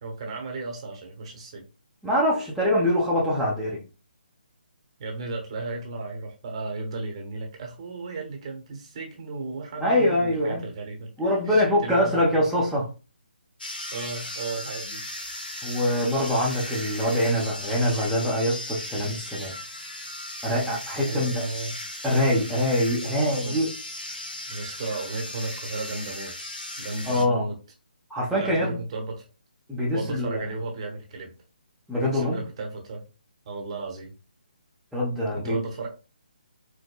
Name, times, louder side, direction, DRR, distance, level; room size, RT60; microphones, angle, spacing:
voice 1, 0.0-1.7 5.0-11.1 11.5-12.2 13.9-15.1 21.0-21.8 23.4-23.6 24.5-26.3 26.8-27.6 28.4-29.3 29.9-31.3 32.0-33.1 33.5-34.1 35.3-35.9, right 3 dB, 35° right, 1.0 m, -34 dB
voice 2, 2.0-3.8 9.8-10.6 11.2-12.9 15.6-19.5 20.4-21.4 22.0-23.7 27.1-27.5 28.1-28.8 29.7-30.4 31.9-32.4 34.9-35.6, left 1 dB, ahead, 0.8 m, -24 dB
sound 1, 13.6-27.3, left 1 dB, 70° left, 0.8 m, -37 dB
4.8 x 2.1 x 2.3 m
figure-of-eight pair, 145°, 5 cm